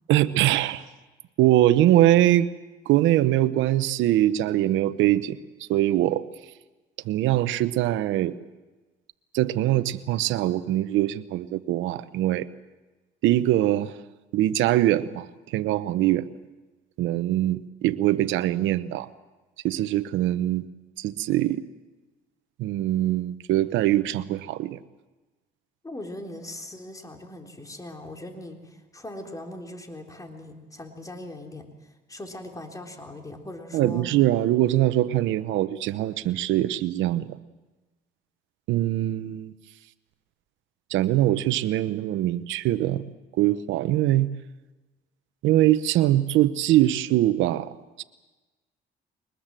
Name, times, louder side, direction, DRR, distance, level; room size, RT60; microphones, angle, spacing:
voice 1, 0.1-0.8 1.4-2.5 2.9-5.4 5.7-6.2 7.0-8.3 9.3-12.5 13.2-13.9 14.3-16.3 17.0-19.1 19.6-20.7 21.0-21.6 22.6-24.8 33.7-37.3 38.7-39.5 40.9-43.0 43.4-44.3 45.4-47.7 48.0-48.1, right 14 dB, 85° right, 14 dB, 1.0 m, -22 dB
voice 2, 25.8-34.1, left 1 dB, 15° left, 4 dB, 3.7 m, -40 dB
23.0 x 20.0 x 7.6 m, 1.2 s
cardioid pair, 85°, 19 cm